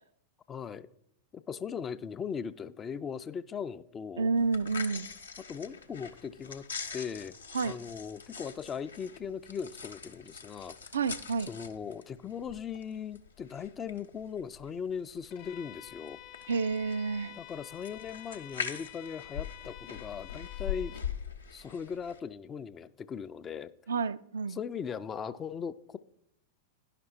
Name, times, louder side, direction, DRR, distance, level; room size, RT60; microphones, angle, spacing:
voice 1, 0.5-0.9 1.3-4.3 5.5-7.4 7.6-10.8 11.5-16.2 17.4-21.0 21.5-23.7 24.5-26.0, left 7 dB, 25° left, 0.4 m, -39 dB
voice 2, 4.2-5.1 7.5-7.8 10.9-11.5 16.5-17.4 23.9-24.6, right 4 dB, 70° right, 0.3 m, -30 dB
sound 1, 4.4-22.2, left 7 dB, 75° left, 0.7 m, -43 dB
Bowed string instrument, 15.3-21.1, left 15 dB, 50° left, 0.8 m, -50 dB
10.5 x 5.9 x 4.3 m
figure-of-eight pair, 90°, 0 cm